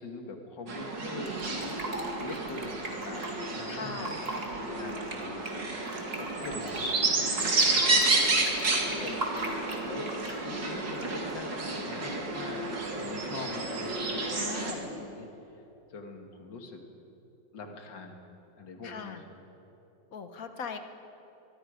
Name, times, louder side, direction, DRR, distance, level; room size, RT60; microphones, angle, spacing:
voice 1, 0.0-5.6 6.1-8.1 8.8-15.3 15.5-15.6 15.9-16.8 17.5-18.2 18.6-19.4, left 3 dB, 85° left, 3 dB, 2.4 m, -43 dB
sound 1, 0.7-14.7, right 3 dB, 80° right, 3.1 m, -30 dB
Fill (with liquid), 1.3-3.3 3.9-4.5 4.8-7.7 8.0-10.4 10.9-11.3, right 2 dB, 35° right, 2.4 m, -39 dB
voice 2, 3.7-4.2 14.3-14.9 18.8-19.2 20.1-20.8, left 6 dB, 55° left, 8 dB, 1.4 m, -39 dB
23.5 x 22.0 x 5.1 m, 3.0 s
omnidirectional pair, 1.9 m